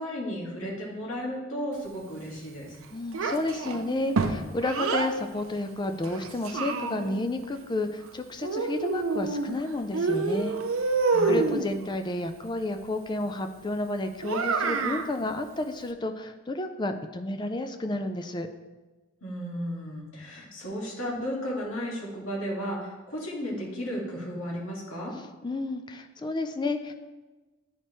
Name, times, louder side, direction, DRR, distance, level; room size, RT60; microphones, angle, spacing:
voice 1, 0.0-2.8 11.1-11.4 19.2-25.1, equal, 85° left, -3 dB, 2.0 m, -34 dB
voice 2, 2.9-10.6 11.3-18.5 25.1-26.9, left 2 dB, 20° left, 7 dB, 0.4 m, -31 dB
Child speech kid speaking, 3.1-5.1 6.0-7.3 8.4-9.6 9.9-11.7 14.2-15.1, right 3 dB, 85° right, 0.6 m, -27 dB
10.5 x 4.3 x 3.1 m, 1.2 s
head